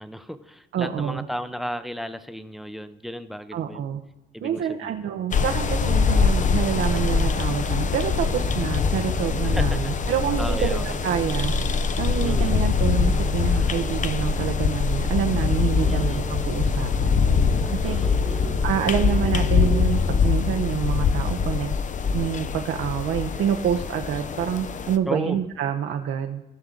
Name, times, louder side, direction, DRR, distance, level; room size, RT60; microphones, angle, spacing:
voice 1, 0.0-3.8 4.3-5.3 9.4-9.9 10.4-11.0 12.2-12.6 15.8-16.3 17.8-18.9 25.1-25.4, equal, ahead, 12 dB, 0.6 m, -34 dB
voice 2, 0.7-1.2 3.5-4.0 4.4-18.0 18.6-21.7 22.1-26.4, right 9 dB, 70° right, 4 dB, 0.8 m, -27 dB
sound 1, 5.3-25.0, left 6 dB, 40° left, 0.6 m, -24 dB
sound 2, 5.5-19.8, right 3 dB, 30° right, 1.0 m, -33 dB
16.0 x 6.1 x 3.9 m, 1.0 s
cardioid pair, 90°, 20 cm